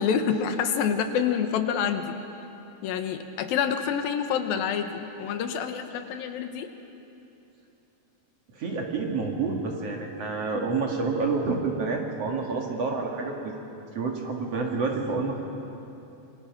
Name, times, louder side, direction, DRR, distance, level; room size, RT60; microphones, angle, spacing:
voice 1, 0.0-2.2 2.8-6.7, left 7 dB, 80° left, 7 dB, 2.9 m, -27 dB
voice 2, 8.5-13.5 13.9-15.4, right 4 dB, 50° right, 1 dB, 2.6 m, -28 dB
26.5 x 24.5 x 6.0 m, 2.9 s
omnidirectional pair, 4.1 m